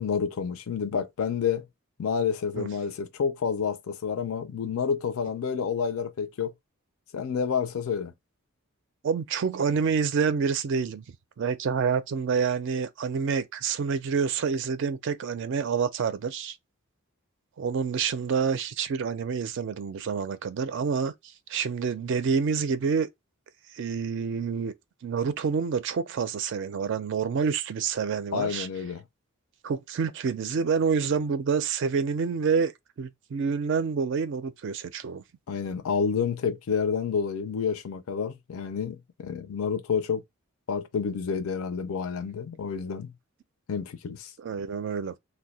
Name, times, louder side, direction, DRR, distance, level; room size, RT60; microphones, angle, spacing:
voice 1, 0.0-1.7 2.0-6.5 7.1-8.1 28.3-29.0 35.5-40.2 40.7-43.1 43.7-44.3, left 6 dB, 80° left, 0.4 m, -29 dB
voice 2, 9.0-11.0 11.4-16.6 17.6-23.1 23.7-24.7 25.0-28.7 29.6-32.7 33.0-35.2 44.4-45.1, right 6 dB, 60° right, 0.4 m, -28 dB
2.6 x 2.1 x 4.0 m
head